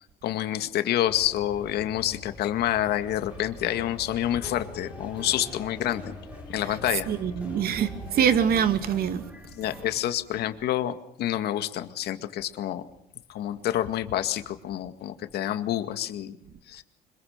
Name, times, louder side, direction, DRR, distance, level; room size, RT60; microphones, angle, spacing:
voice 1, 0.0-6.1 6.5-7.1 9.5-12.8 13.3-16.4 16.7-16.8, left 12 dB, 75° left, 2.1 m, -28 dB
sound 1, 1.1-9.0, left 2 dB, 25° left, 5.8 m, -45 dB
sound 2, 2.8-10.0, equal, 10° right, 4.7 m, -46 dB
voice 2, 7.1-9.3, right 8 dB, 65° right, 2.2 m, -24 dB
25.5 x 22.5 x 6.7 m
cardioid pair, 110°, 17 cm